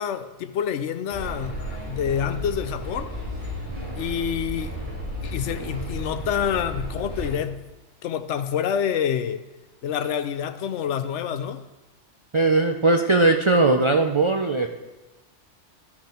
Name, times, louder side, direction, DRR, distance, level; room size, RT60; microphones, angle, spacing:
voice 1, 0.0-3.1 4.0-4.7 5.2-7.6 8.0-9.4 9.8-11.6, left 8 dB, 75° left, 0.9 m, -27 dB
sound 1, 1.1-7.3, equal, 25° left, 3.9 m, -33 dB
voice 2, 12.3-14.7, right 3 dB, 50° right, 0.3 m, -19 dB
13.0 x 5.9 x 4.4 m
omnidirectional pair, 1.2 m